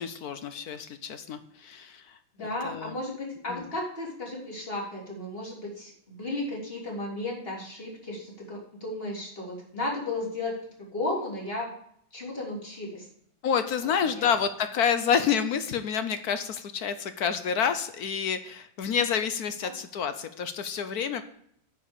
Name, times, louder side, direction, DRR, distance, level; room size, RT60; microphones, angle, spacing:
voice 1, 0.0-2.2 2.6-2.9 3.5-3.7 13.4-21.2, left 7 dB, 65° left, 11 dB, 1.0 m, -28 dB
voice 2, 2.4-11.7 12.1-13.0 14.1-14.2 19.6-19.7, left 2 dB, 30° left, -2 dB, 3.4 m, -34 dB
9.5 x 5.8 x 8.1 m, 0.69 s
omnidirectional pair, 2.2 m